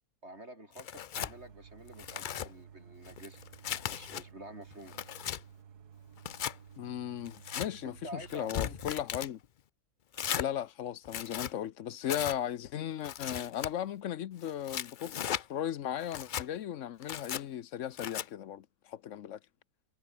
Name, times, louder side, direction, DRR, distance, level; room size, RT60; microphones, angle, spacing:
voice 1, 0.2-3.4 3.8-5.0 7.5-8.8, right 1 dB, 45° right, 7.8 m, -49 dB
Tearing, 0.7-1.3 1.9-2.5 3.0-4.2 4.7-5.4 6.2-6.5 7.2-7.7 8.3-9.3 10.1-10.5 11.0-11.5 12.1-12.4 13.0-13.7 14.4-15.4 16.0-16.5 17.0-17.4 18.0-18.3, left 9 dB, 80° left, 0.4 m, -37 dB
sound 1, 1.2-8.9, right 7 dB, 80° right, 2.0 m, -54 dB
voice 2, 6.8-9.4 10.4-19.4, left 10 dB, 60° left, 1.0 m, -37 dB
omnidirectional pair, 1.6 m